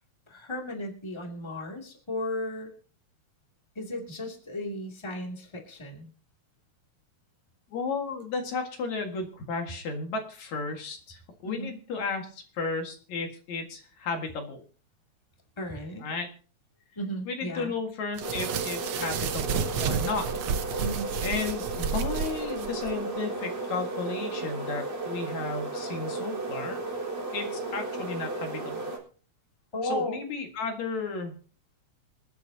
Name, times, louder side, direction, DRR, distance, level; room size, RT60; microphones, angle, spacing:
voice 1, 0.3-2.7 3.8-6.1 11.4-11.7 15.6-16.1 17.0-17.7 20.8-21.1 29.7-30.2, left 1 dB, 10° left, 1 dB, 2.3 m, -35 dB
voice 2, 7.7-14.6 16.0-16.3 17.3-20.3 21.2-26.8 27.3-28.9 29.8-31.4, left 4 dB, 70° left, 4 dB, 3.2 m, -34 dB
sound 1, 18.2-29.0, right 3 dB, 45° right, 4.6 m, -34 dB
sound 2, 18.2-22.9, right 7 dB, 90° right, 1.0 m, -31 dB
26.5 x 9.2 x 2.8 m, 0.41 s
omnidirectional pair, 3.3 m